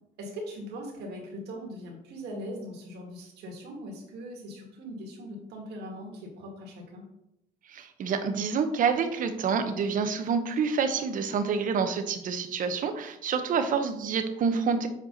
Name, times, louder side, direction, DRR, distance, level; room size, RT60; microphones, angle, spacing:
voice 1, 0.2-7.0, equal, 75° right, 0 dB, 2.2 m, -40 dB
voice 2, 7.7-14.9, right 5 dB, 50° right, 8 dB, 0.9 m, -27 dB
7.6 x 4.7 x 4.0 m, 0.84 s
cardioid pair, 110°, 17 cm